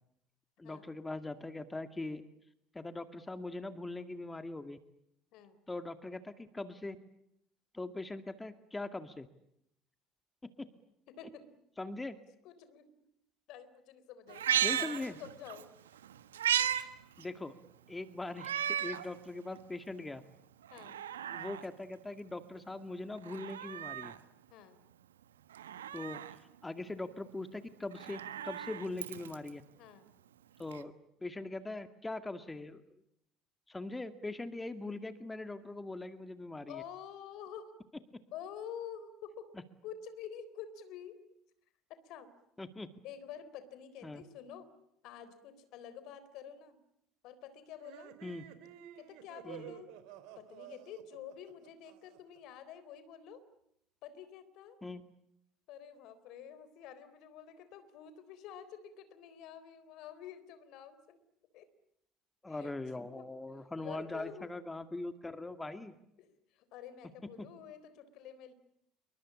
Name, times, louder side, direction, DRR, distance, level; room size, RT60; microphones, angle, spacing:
voice 1, 0.6-2.2 2.7-4.8 5.7-7.0 7.7-9.3 10.4-10.7 11.8-12.2 14.6-15.2 17.2-17.5 17.9-20.2 21.3-24.2 25.9-26.2 26.6-29.6 30.6-30.9 31.2-32.8 33.7-36.8 42.6-42.9 44.0-44.2 48.2-48.4 49.4-49.7 54.8-55.0 62.4-65.9 67.4-67.5, left 2 dB, 15° left, 10 dB, 2.1 m, -41 dB
voice 2, 11.1-11.4 12.4-12.9 13.5-15.7 20.7-21.1 24.5-24.8 29.8-30.1 36.7-37.7 38.3-39.5 39.8-41.2 41.9-42.3 43.0-44.7 45.0-46.8 47.2-48.1 49.0-49.9 50.4-53.4 54.0-54.8 55.7-61.2 61.5-61.7 62.5-62.7 63.0-63.3 63.8-64.6 66.2-68.5, left 8 dB, 65° left, 14 dB, 3.9 m, -49 dB
Meow, 14.3-15.6 16.0-16.8 17.2-17.3 18.4-19.1 19.6-19.7 20.6-21.6 23.2-24.2 25.5-26.4 27.8-29.5 30.7-30.8, right 10 dB, 85° right, 1.3 m, -35 dB
sound 1, 47.8-52.4, right 11 dB, 70° right, 3.5 m, -51 dB
28.0 x 23.5 x 8.7 m, 0.76 s
hypercardioid pair, 65°, 0 cm